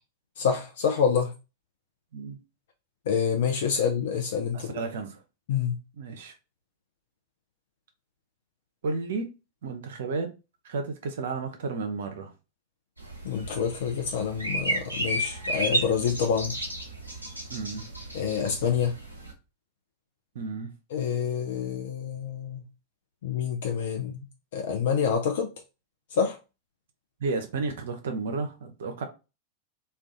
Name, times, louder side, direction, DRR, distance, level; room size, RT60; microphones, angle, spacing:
voice 1, 0.4-1.3 3.1-4.7 5.5-5.8 13.2-16.5 18.1-18.9 20.9-22.6 23.2-24.2 24.5-25.5 26.1-26.4, left 7 dB, 55° left, 0.4 m, -27 dB
voice 2, 4.5-5.2 6.0-6.3 8.8-9.3 9.6-10.3 10.6-12.3 17.5-17.9 20.4-20.7 27.2-29.0, right 4 dB, 60° right, 0.5 m, -32 dB
sound 1, 13.0-19.3, right 1 dB, 90° left, 0.9 m, -33 dB
2.3 x 2.2 x 3.7 m
figure-of-eight pair, 90°, 0 cm